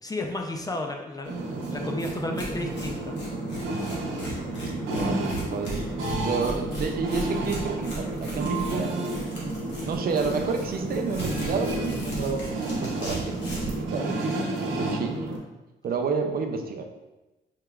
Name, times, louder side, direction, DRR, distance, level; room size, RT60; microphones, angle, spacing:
voice 1, 0.0-1.4 1.7-3.2, left 2 dB, 20° left, 3 dB, 0.4 m, -32 dB
sound 1, 1.2-15.4, right 2 dB, 90° right, 0.8 m, -31 dB
Tearing, 1.6-1.7 2.0-2.1 2.4-13.8, equal, 65° left, 1.3 m, -38 dB
voice 2, 4.9-5.9 6.1-8.9 9.9-14.2 14.8-15.3 15.8-16.8, right 5 dB, 50° right, 4 dB, 0.4 m, -30 dB
4.6 x 2.9 x 2.3 m, 1.0 s
cardioid pair, 90°, 20 cm